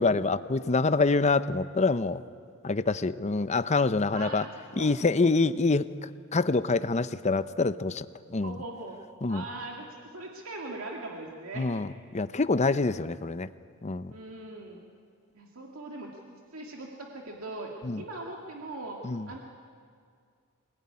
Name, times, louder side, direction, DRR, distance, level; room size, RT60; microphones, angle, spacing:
voice 1, 0.0-2.2 2.6-4.5 4.8-5.9 6.3-8.6 9.2-9.4 11.6-13.5 13.8-14.1 17.8-18.0 19.0-19.3, left 3 dB, 35° left, 13 dB, 0.7 m, -26 dB
voice 2, 4.1-5.0 8.4-9.0 9.3-9.9 10.1-11.7 14.1-14.8 15.3-16.1 16.5-19.0 19.3-19.5, right 2 dB, 80° right, -1 dB, 2.3 m, -40 dB
26.0 x 20.0 x 9.7 m, 2.2 s
head